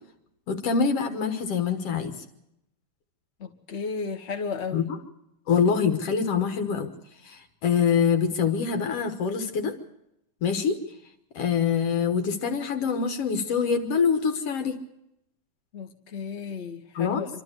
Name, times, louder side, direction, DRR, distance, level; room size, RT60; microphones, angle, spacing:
voice 1, 0.5-2.1 4.7-5.0 5.5-6.9 7.2-9.7 10.4-10.8 11.3-14.8 17.0-17.2, left 6 dB, 55° left, 7 dB, 2.3 m, -25 dB
voice 2, 3.4-4.9 15.7-17.3, left 5 dB, 30° left, 4 dB, 1.2 m, -34 dB
26.0 x 13.0 x 8.1 m, 0.82 s
omnidirectional pair, 3.5 m